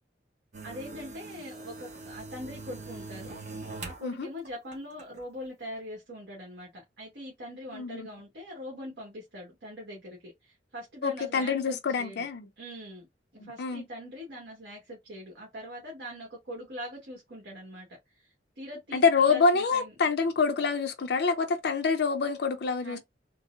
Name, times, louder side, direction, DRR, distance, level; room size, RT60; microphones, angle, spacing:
sound 1, 0.5-4.1 4.5-5.2, right 3 dB, 45° right, 1.0 m, -42 dB
voice 1, 0.6-3.4 3.8-12.2 12.6-13.1 13.4-17.9 18.1-19.9 22.8-23.0, equal, 60° right, 1.3 m, -42 dB
voice 2, 7.7-8.1 11.0-12.5 13.4-13.8 18.9-23.0, left 5 dB, 65° left, 0.5 m, -26 dB
3.7 x 2.0 x 2.5 m
head